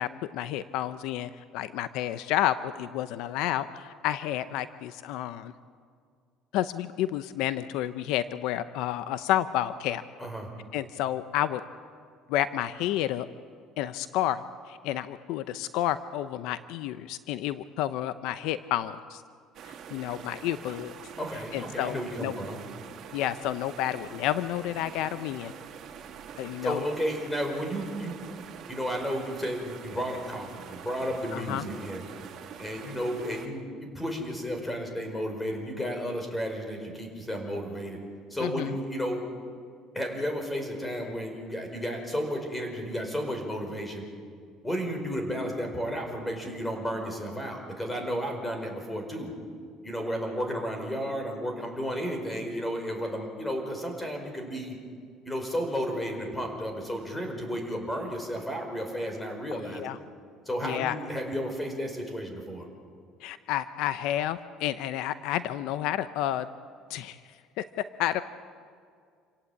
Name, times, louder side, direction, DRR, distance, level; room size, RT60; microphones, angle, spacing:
voice 1, 0.0-5.5 6.5-10.0 10.7-11.6 12.3-13.3 13.8-19.2 19.6-20.9 21.5-22.3 23.1-25.5 26.4-26.9 31.3-31.6 38.4-38.8 59.7-60.0 60.6-61.0 63.2-66.5 66.9-67.2 67.6-67.7 68.0-68.2, left 12 dB, 75° left, 13 dB, 0.8 m, -30 dB
voice 2, 10.2-10.5 21.2-22.6 26.6-28.2 28.7-32.0 32.6-38.0 38.3-39.2 39.9-44.0 44.6-49.3 49.8-54.7 55.2-59.8 60.4-62.7, equal, 10° left, 4 dB, 5.1 m, -33 dB
sound 1, 19.5-33.5, right 8 dB, 50° right, 2.4 m, -45 dB
28.0 x 17.5 x 8.6 m, 2.2 s
cardioid pair, 130°, 0 cm